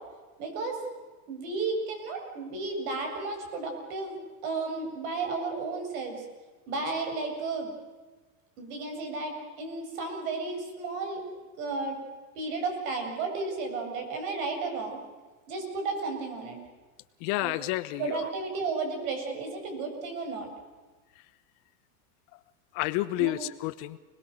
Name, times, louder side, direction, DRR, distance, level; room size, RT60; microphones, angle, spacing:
voice 1, 0.4-0.8 1.3-4.2 4.4-6.2 6.7-7.7 8.6-11.2 11.6-12.0 12.3-15.0 15.5-16.6 17.4-17.6 18.0-20.5 23.2-23.3, right 3 dB, 60° right, 4 dB, 7.7 m, -33 dB
voice 2, 17.2-18.2 22.7-24.0, left 17 dB, 50° left, 14 dB, 1.1 m, -30 dB
29.5 x 20.5 x 6.6 m, 1.3 s
hypercardioid pair, 120°, 47 cm